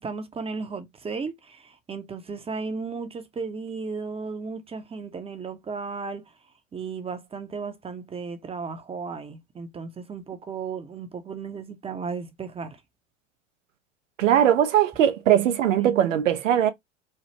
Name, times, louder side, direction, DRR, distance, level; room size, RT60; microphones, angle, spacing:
voice 1, 0.0-6.3 6.7-12.8 15.7-15.9, right 4 dB, 15° right, 0.5 m, -35 dB
voice 2, 14.2-16.7, right 10 dB, 85° right, 0.6 m, -20 dB
3.2 x 2.0 x 2.7 m
hypercardioid pair, 80°, 37 cm